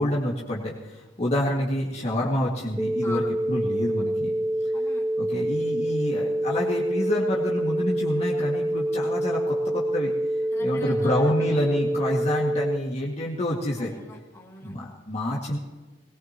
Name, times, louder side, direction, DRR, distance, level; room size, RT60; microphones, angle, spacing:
voice 1, 0.0-4.3 5.2-10.1 10.6-13.9 14.6-15.6, left 1 dB, 35° left, -4 dB, 2.1 m, -28 dB
sound 1, 2.8-12.8, right 1 dB, 5° right, 0.4 m, -26 dB
voice 2, 4.7-5.1 10.5-11.6 13.8-14.8, left 3 dB, 15° left, -3 dB, 2.5 m, -42 dB
20.5 x 19.0 x 3.0 m, 1.2 s
head